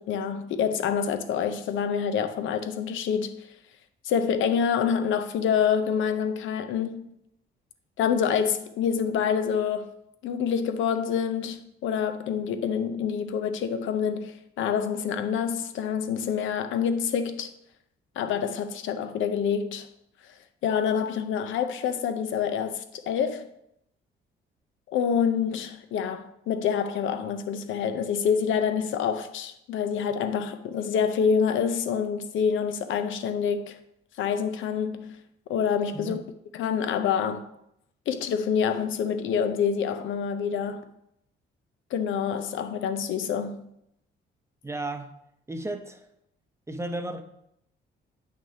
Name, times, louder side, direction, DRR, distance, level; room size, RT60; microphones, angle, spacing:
voice 1, 0.0-3.4 4.0-7.1 8.0-9.9 10.2-17.5 18.2-19.9 20.6-23.5 24.9-33.8 34.2-35.2 35.5-36.2 36.5-37.5 38.1-40.9 41.9-43.7, left 7 dB, 80° left, 0.7 m, -27 dB
voice 2, 35.9-36.3 44.6-45.1 45.5-46.1 46.7-47.2, right 1 dB, 15° right, 0.7 m, -34 dB
8.7 x 6.0 x 2.8 m
cardioid pair, 90°, 20 cm